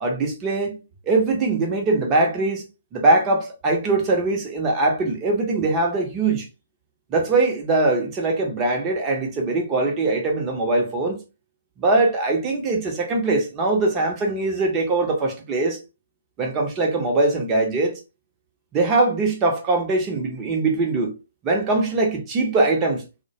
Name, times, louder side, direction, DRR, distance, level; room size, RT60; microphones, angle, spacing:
voice 1, 0.0-0.8 1.0-2.6 2.9-6.5 7.1-11.2 11.8-15.8 16.4-18.0 18.7-21.1 21.4-23.0, right 2 dB, 20° right, 0.6 m, -22 dB
2.2 x 2.0 x 2.7 m
hypercardioid pair, 140°, 0 cm